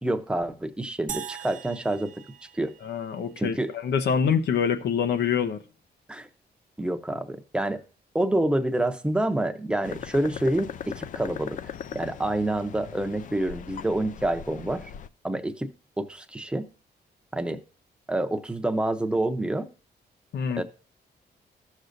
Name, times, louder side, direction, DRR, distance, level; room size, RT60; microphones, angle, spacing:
voice 1, 0.0-2.1 2.6-2.7 3.4-3.7 6.1-6.3 6.8-7.8 8.1-14.8 15.2-15.7 16.0-16.6 17.3-17.6 18.1-19.7 20.6-20.7, right 1 dB, 5° right, 0.7 m, -27 dB
sound 1, 1.1-3.5, right 8 dB, 50° right, 0.7 m, -41 dB
voice 2, 2.8-5.6 20.3-20.6, left 7 dB, 85° left, 1.0 m, -25 dB
sound 2, 9.8-15.1, left 9 dB, 50° left, 0.4 m, -39 dB
14.5 x 6.4 x 2.6 m
wide cardioid pair, 160°, 17 cm